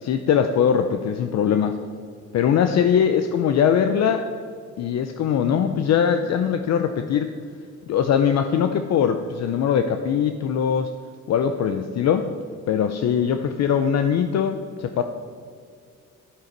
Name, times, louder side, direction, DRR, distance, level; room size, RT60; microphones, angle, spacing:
voice 1, 0.0-1.8 2.3-4.3 4.8-7.3 7.9-10.9 11.3-12.3 12.7-15.0, left 8 dB, 60° left, 8 dB, 0.6 m, -21 dB
10.0 x 7.7 x 4.6 m, 2.2 s
cardioid pair, 90°, 30 cm